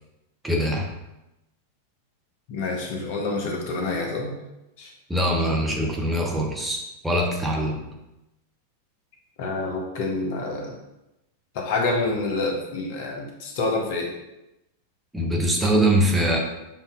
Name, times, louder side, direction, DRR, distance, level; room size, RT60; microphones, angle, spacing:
voice 1, 0.4-0.9 5.1-7.9 15.1-16.4, right 1 dB, 5° right, -1 dB, 0.7 m, -23 dB
voice 2, 2.5-4.4 4.8-4.9 9.4-10.8 11.5-14.1, left 3 dB, 50° left, 1 dB, 0.8 m, -27 dB
6.9 x 2.6 x 2.4 m, 0.93 s
figure-of-eight pair, 90°, 0 cm